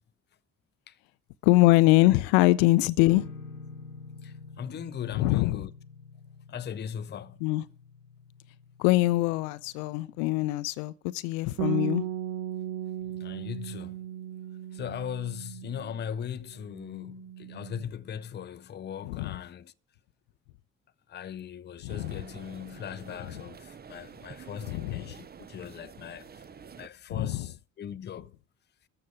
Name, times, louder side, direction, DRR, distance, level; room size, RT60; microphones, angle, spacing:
voice 1, 1.4-3.3 5.2-5.7 7.4-7.6 8.8-12.0 19.0-19.3 21.8-22.2 24.7-25.0 27.1-27.4, left 19 dB, 65° left, 0.6 m, -23 dB
sound 1, 3.0-10.6, left 4 dB, 90° left, 1.2 m, -48 dB
voice 2, 4.2-5.7 6.5-7.4 13.1-14.1 14.7-19.7 21.1-26.3 26.8-28.3, left 8 dB, 25° left, 0.6 m, -39 dB
Bass guitar, 11.6-16.3 16.5-17.8, right 11 dB, 60° right, 1.0 m, -36 dB
sound 2, 21.9-26.9, right 6 dB, 25° right, 0.7 m, -48 dB
14.0 x 6.6 x 8.5 m
figure-of-eight pair, 50°, 41 cm